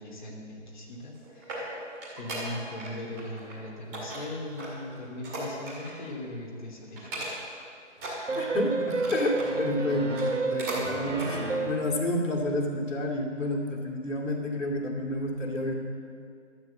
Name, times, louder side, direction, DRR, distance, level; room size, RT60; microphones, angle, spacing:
voice 1, 0.0-1.8 2.1-7.4, left 1 dB, 40° left, -3 dB, 3.1 m, -39 dB
sound 1, 0.9-2.9 3.2-3.5 3.9-6.1 6.4-6.6 7.0-7.6 7.9-9.5 10.0-10.8 11.1-11.3 11.8-11.9, right 1 dB, 10° right, 2.3 m, -38 dB
voice 2, 8.3-15.7, left 1 dB, 85° left, 0 dB, 2.4 m, -30 dB
sound 2, 8.3-11.9, right 3 dB, 75° right, 3.1 m, -30 dB
13.0 x 9.5 x 7.2 m, 2.3 s
hypercardioid pair, 170°, 37 cm